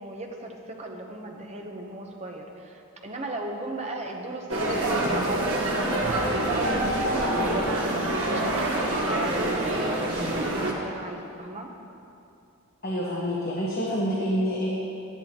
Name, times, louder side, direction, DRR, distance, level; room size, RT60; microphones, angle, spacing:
voice 1, 0.0-11.7, right 2 dB, 30° right, 1 dB, 0.9 m, -38 dB
sound 1, 4.5-10.7, right 1 dB, 60° right, 1.5 m, -26 dB
voice 2, 12.8-14.7, equal, 45° left, -6 dB, 1.2 m, -27 dB
12.5 x 10.5 x 3.0 m, 2.6 s
head